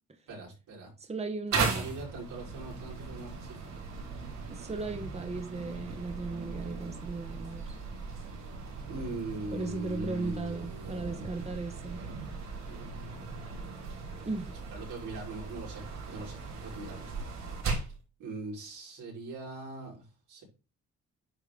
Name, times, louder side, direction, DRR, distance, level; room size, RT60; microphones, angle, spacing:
voice 1, 0.3-0.9 1.5-3.7 8.9-12.1 12.6-13.3 14.7-17.3 18.2-20.4, right 2 dB, 85° right, 4.5 m, -42 dB
voice 2, 1.0-1.9 4.5-7.7 9.5-12.0 14.2-14.5, right 3 dB, 20° right, 1.2 m, -37 dB
sound 1, 1.5-18.0, right 4 dB, 60° right, 4.6 m, -38 dB
10.0 x 3.8 x 3.4 m
cardioid pair, 90°, 30 cm